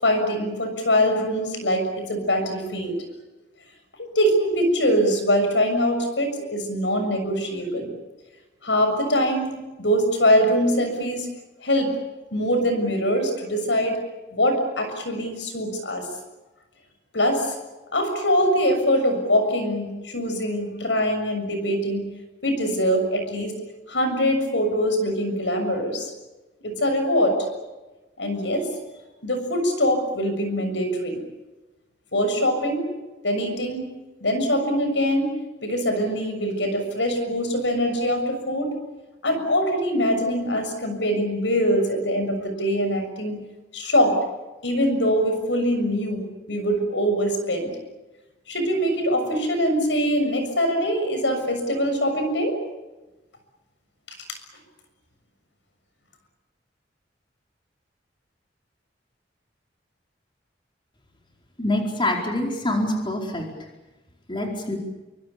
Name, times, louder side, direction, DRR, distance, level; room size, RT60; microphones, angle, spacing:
voice 1, 0.0-3.0 4.2-7.9 8.6-11.3 11.6-11.9 12.3-14.0 14.3-16.1 17.1-17.6 17.9-22.0 22.4-23.5 23.9-26.1 26.6-27.4 28.2-28.7 29.2-31.2 32.1-32.8 33.2-33.9 34.2-35.3 35.6-38.7 39.2-43.4 43.7-44.2 44.6-46.2 46.5-47.7 48.5-52.6 54.3-54.4, equal, 85° left, 6 dB, 6.9 m, -23 dB
voice 2, 61.6-63.4 64.3-64.8, left 1 dB, 30° left, 1 dB, 4.6 m, -25 dB
28.0 x 24.5 x 7.0 m, 1.1 s
head